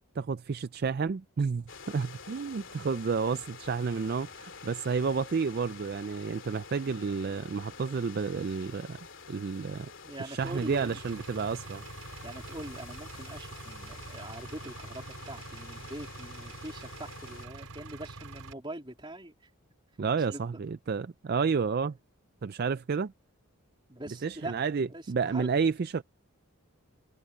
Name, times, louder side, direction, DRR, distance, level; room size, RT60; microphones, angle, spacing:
voice 1, 0.2-9.0 9.3-9.9 10.2-11.8 20.0-22.0 22.4-23.1 24.2-26.0, right 5 dB, 45° right, 0.4 m, -30 dB
sound 1, 1.7-17.5, left 5 dB, 60° left, 3.1 m, -48 dB
voice 2, 6.8-7.4 10.0-11.0 12.2-19.3 20.1-20.4 23.9-25.5, right 1 dB, 20° right, 3.2 m, -43 dB
Engine, 10.4-18.5, right 3 dB, 80° right, 5.2 m, -45 dB
head